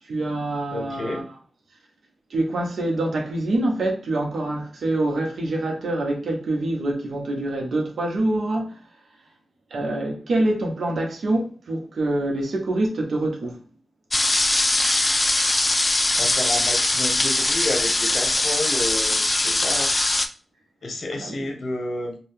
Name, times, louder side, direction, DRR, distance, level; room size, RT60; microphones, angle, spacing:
voice 1, 0.1-1.2 2.3-8.8 9.7-13.6 21.2-21.3, right 1 dB, 80° right, 0.7 m, -25 dB
voice 2, 0.7-1.2 16.1-20.2 20.8-22.2, left 2 dB, 65° left, 0.8 m, -30 dB
sound 1, 14.1-20.3, left 2 dB, 35° left, 0.4 m, -21 dB
2.7 x 2.3 x 3.4 m
cardioid pair, 45°, 0 cm